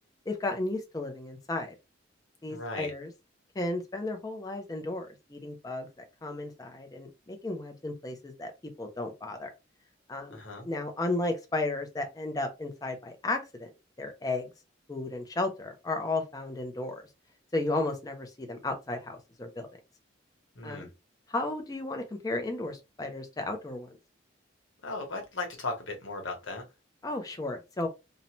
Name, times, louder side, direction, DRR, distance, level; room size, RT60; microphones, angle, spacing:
voice 1, 0.3-1.7 2.4-3.1 3.5-5.9 6.2-8.5 8.8-9.5 10.1-10.4 10.6-13.7 14.0-14.5 14.9-17.0 17.5-19.7 20.6-20.9 21.3-23.9 27.0-27.9, left 2 dB, 20° left, 0.4 m, -34 dB
voice 2, 2.5-2.9 10.3-10.7 20.5-20.9 24.8-26.6, left 3 dB, 90° left, 1.1 m, -36 dB
2.6 x 2.1 x 2.9 m
head